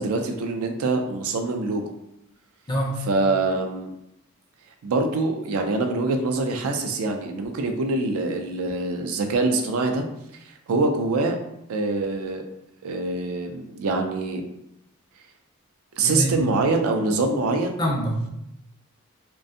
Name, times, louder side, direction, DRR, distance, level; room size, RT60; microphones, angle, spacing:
voice 1, 0.0-1.9 3.1-3.9 4.8-10.0 10.4-11.4 11.7-12.4 12.8-14.4 16.0-17.8, right 3 dB, 80° right, 4 dB, 0.4 m, -24 dB
voice 2, 2.7-3.2 16.0-16.5 17.8-18.3, equal, 20° left, -2 dB, 0.4 m, -26 dB
2.4 x 2.2 x 2.6 m, 0.80 s
head